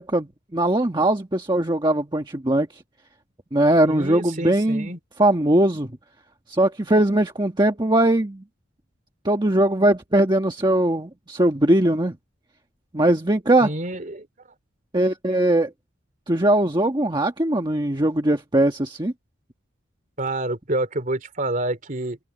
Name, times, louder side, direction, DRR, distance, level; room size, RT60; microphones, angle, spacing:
voice 1, 0.0-2.8 3.5-4.9 5.2-5.9 6.5-8.4 9.2-12.2 12.9-13.7 14.9-15.7 16.3-19.1, right 1 dB, 20° right, 1.4 m, -20 dB
voice 2, 3.8-5.0 13.6-14.3 20.2-22.2, right 2 dB, 40° right, 3.0 m, -28 dB
open air
head